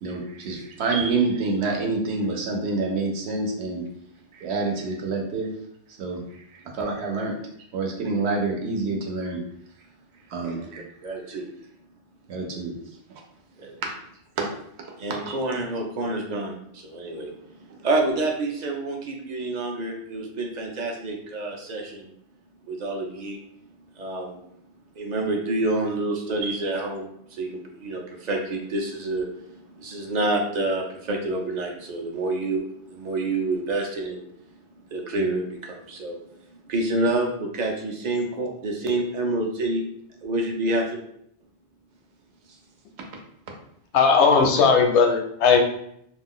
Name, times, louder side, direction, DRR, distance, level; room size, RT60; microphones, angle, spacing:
voice 1, 0.0-3.9 4.3-5.5 5.9-7.4 7.7-9.5 10.3-10.8 12.3-12.8 13.8-13.9 14.4-14.5 14.8-15.4 17.7-17.8 26.4-26.6 43.0-43.1, right 3 dB, 70° right, 1 dB, 0.9 m, -27 dB
voice 2, 11.0-11.5 13.6-13.7 15.0-17.3 17.6-22.1 22.7-23.4 24.0-24.4 25.0-34.2 34.9-36.2 36.7-39.8 40.2-41.0 44.3-44.4, right 2 dB, 50° right, 1 dB, 0.5 m, -28 dB
voice 3, 43.9-45.6, left 5 dB, 80° left, 3 dB, 0.9 m, -17 dB
2.5 x 2.2 x 3.6 m, 0.72 s
omnidirectional pair, 1.2 m